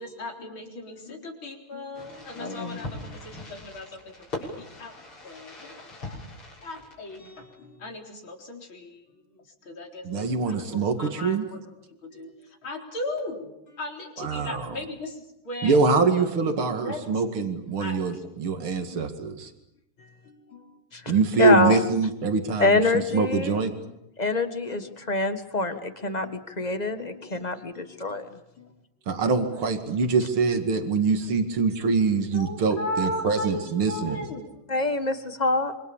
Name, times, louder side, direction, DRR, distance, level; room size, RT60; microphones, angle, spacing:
voice 1, 0.0-4.9 5.2-6.2 6.6-15.8 16.2-17.5 17.8-18.3 18.8-19.2 20.0-20.8 23.9-24.0 24.7-24.9 26.2-26.4 27.0-27.4 27.7-28.0 28.6-28.7 29.3-29.8 31.8-31.9 32.3-34.6, left 1 dB, 70° left, 2 dB, 4.7 m, -38 dB
Fireworks, 1.9-7.5, left 2 dB, 90° left, 7.6 m, -41 dB
voice 2, 2.4-2.8 20.9-21.8 22.6-23.6 24.2-28.3 34.7-35.7, left 3 dB, 20° left, 9 dB, 1.5 m, -25 dB
voice 3, 10.0-11.4 14.2-14.6 15.6-19.5 21.1-22.8 23.1-23.7 29.1-34.2, right 4 dB, 75° right, 6 dB, 3.0 m, -24 dB
27.0 x 25.5 x 7.2 m, 0.86 s
omnidirectional pair, 2.3 m